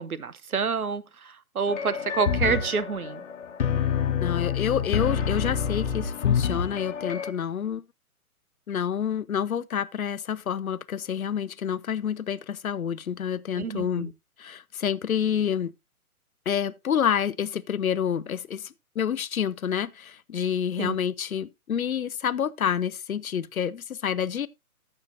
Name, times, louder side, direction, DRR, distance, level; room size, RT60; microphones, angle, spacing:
voice 1, 0.0-3.2 13.5-14.1 20.8-21.0, right 5 dB, 75° right, 0.9 m, -28 dB
sound 1, 1.7-7.3, left 7 dB, 50° left, 1.2 m, -27 dB
voice 2, 4.2-7.8 8.7-14.1 14.4-15.7 16.5-24.5, left 8 dB, 65° left, 0.6 m, -28 dB
14.5 x 6.7 x 2.5 m
figure-of-eight pair, 130°, 45 cm